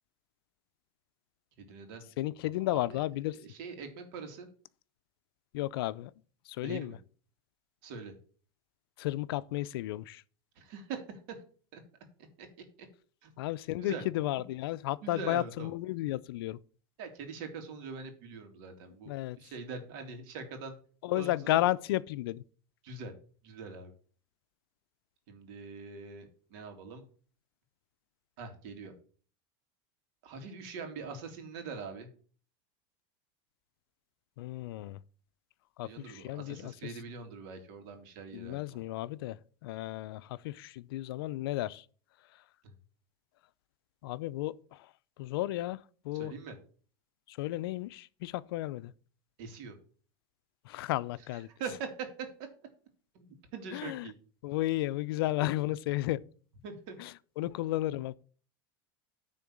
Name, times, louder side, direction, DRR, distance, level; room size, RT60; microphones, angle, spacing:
voice 1, 1.6-2.0 2.6-4.5 6.6-7.0 7.8-8.1 10.6-11.4 11.7-11.8 12.4-12.5 12.8-12.9 13.2-13.3 13.8-14.1 15.0-15.7 17.0-20.7 21.1-21.6 22.8-23.1 23.4-23.9 25.3-27.0 28.4-28.9 30.2-32.1 35.8-38.8 42.6-42.7 46.1-46.6 49.4-49.7 51.3-52.3 53.1-54.1 55.4-55.5 56.6-57.0, right 4 dB, 70° right, 2.5 m, -43 dB
voice 2, 2.2-3.4 5.5-6.1 6.6-7.0 9.0-10.2 13.4-16.6 19.1-19.4 21.0-22.4 34.4-35.0 35.8-36.7 38.3-39.4 39.6-41.8 44.0-44.6 45.2-45.8 46.0-46.3 47.3-48.9 50.7-51.5 53.7-54.1 54.4-56.2 57.0-57.1 57.4-58.1, left 16 dB, 85° left, 0.5 m, -33 dB
10.0 x 3.9 x 7.4 m
supercardioid pair, 125°, 12 cm